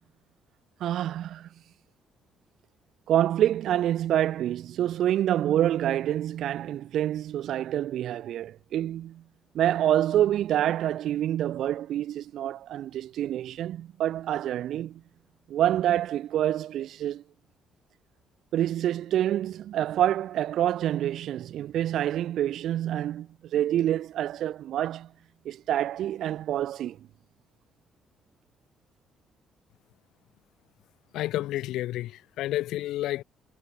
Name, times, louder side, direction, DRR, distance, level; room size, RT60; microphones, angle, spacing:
voice 1, 0.8-1.5 3.1-9.2 9.5-15.0 15.5-17.2 18.5-25.1 25.4-27.0, right 12 dB, 70° right, 0.7 m, -27 dB
voice 2, 31.1-33.2, left 15 dB, 85° left, 0.5 m, -30 dB
cardioid pair, 130°, 0 cm